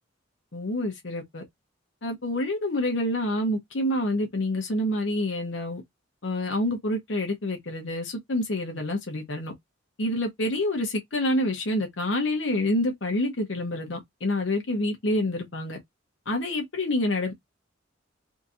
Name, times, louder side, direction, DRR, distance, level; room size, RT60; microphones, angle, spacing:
voice 1, 0.5-1.4 2.0-5.8 6.2-9.5 10.0-15.8 16.3-17.3, left 1 dB, 70° left, 0.9 m, -27 dB
2.8 x 2.7 x 2.4 m
head